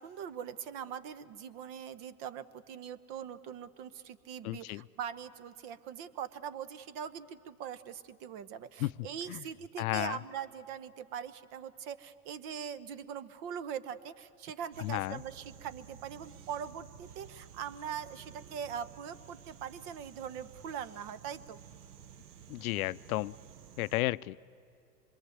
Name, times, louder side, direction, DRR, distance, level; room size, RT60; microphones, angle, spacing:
voice 1, 0.0-21.6, right 8 dB, 55° right, 15 dB, 1.1 m, -42 dB
voice 2, 4.4-4.8 8.8-9.4 9.8-10.2 14.8-15.2 22.5-23.3 23.8-24.4, left 18 dB, 70° left, 18 dB, 0.5 m, -33 dB
sound 1, 14.7-24.0, right 8 dB, 80° right, 1.0 m, -53 dB
25.5 x 22.0 x 8.0 m, 2.5 s
hypercardioid pair, 100°, 46 cm